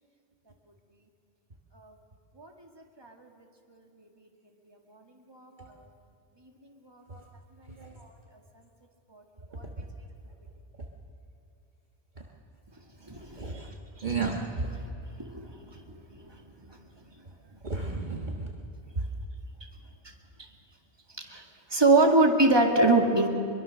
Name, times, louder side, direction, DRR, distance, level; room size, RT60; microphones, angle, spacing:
voice 1, 2.4-2.7 3.0-3.3 3.7-4.3 4.7-5.0 5.3-5.9 6.4-6.5 6.8-7.0 7.6-8.1 9.1-9.2 9.5-9.7 13.0-14.1 15.2-16.4 16.7-16.8 20.0-20.1 21.2-21.4 21.7-23.3, right 3 dB, 20° right, 2 dB, 2.1 m, -27 dB
voice 2, 13.4-13.7 14.0-14.7 17.6-18.5 22.7-22.9, right 2 dB, 45° right, 1 dB, 1.6 m, -32 dB
22.5 x 22.5 x 6.5 m, 2.8 s
omnidirectional pair, 1.1 m